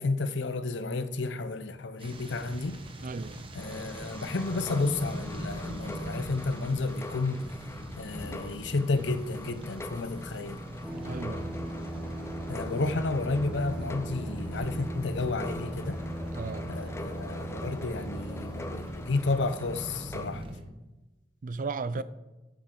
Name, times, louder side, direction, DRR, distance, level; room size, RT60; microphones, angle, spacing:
voice 1, 0.0-2.8 3.5-7.5 8.0-10.6 12.5-16.0 16.7-20.4 22.0-22.1, left 3 dB, 80° left, 0.7 m, -31 dB
sound 1, 2.0-20.6, right 1 dB, 30° right, 1.1 m, -42 dB
voice 2, 3.0-3.5 11.0-11.6 16.3-16.7 21.4-22.0, right 4 dB, 50° right, 0.4 m, -35 dB
sound 2, 3.6-20.3, left 2 dB, 15° left, 0.5 m, -44 dB
sound 3, 10.8-18.8, right 1 dB, 5° right, 1.6 m, -38 dB
14.0 x 8.5 x 3.8 m
head